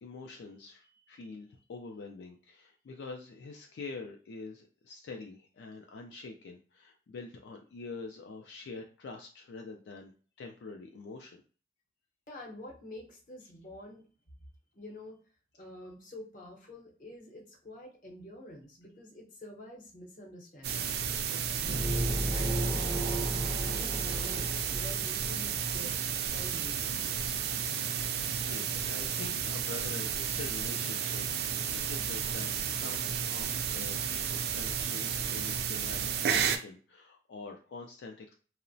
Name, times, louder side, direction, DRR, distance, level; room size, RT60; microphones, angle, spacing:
voice 1, 0.0-11.4 28.5-38.3, left 3 dB, 80° left, 2 dB, 0.3 m, -45 dB
voice 2, 12.3-14.0 14.7-15.2 15.6-23.2 23.6-26.0 26.3-26.9, left 1 dB, 45° left, -1 dB, 0.7 m, -48 dB
sound 1, 20.6-36.6, right 7 dB, 60° right, 0.3 m, -32 dB
sound 2, 21.6-25.3, right 1 dB, 10° left, 0.4 m, -33 dB
2.8 x 2.0 x 2.6 m, 0.40 s
head